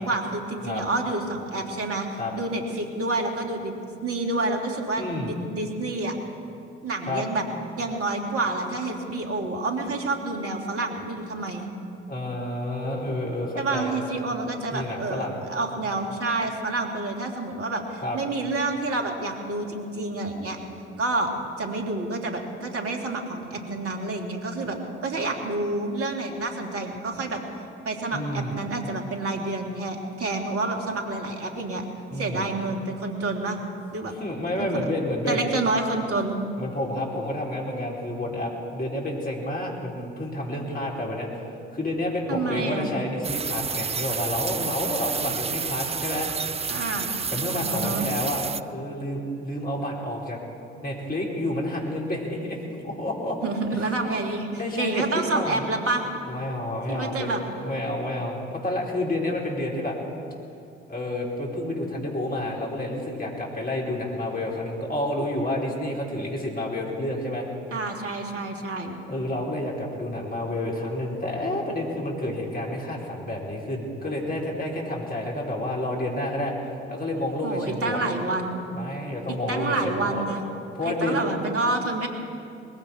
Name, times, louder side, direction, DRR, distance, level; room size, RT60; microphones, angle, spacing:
voice 1, 0.0-3.7 4.0-6.1 6.8-7.4 7.8-11.7 13.6-20.6 21.0-21.3 21.6-27.4 27.8-31.8 32.2-33.6 33.9-34.1 34.6-34.9 35.3-36.4 42.3-42.9 46.7-47.2 47.6-48.1 53.4-56.1 56.9-57.4 67.7-69.0 77.4-78.6 79.3-80.4 80.8-82.1, right 2 dB, 45° right, 2 dB, 2.7 m, -28 dB
voice 2, 5.0-5.3 7.1-7.2 12.1-13.9 14.7-15.4 18.0-18.2 28.1-28.5 32.1-32.5 34.2-35.5 36.6-46.3 47.3-48.4 48.7-50.4 50.8-53.4 54.6-55.6 56.3-57.3 57.6-60.0 60.9-67.5 69.1-76.5 76.9-78.0 78.7-80.2 80.7-81.2, left 1 dB, 25° left, -2 dB, 4.3 m, -29 dB
sound 1, 43.2-48.6, right 6 dB, 20° right, 0.5 m, -30 dB
20.5 x 16.0 x 4.4 m, 2.6 s
figure-of-eight pair, 45°, 33 cm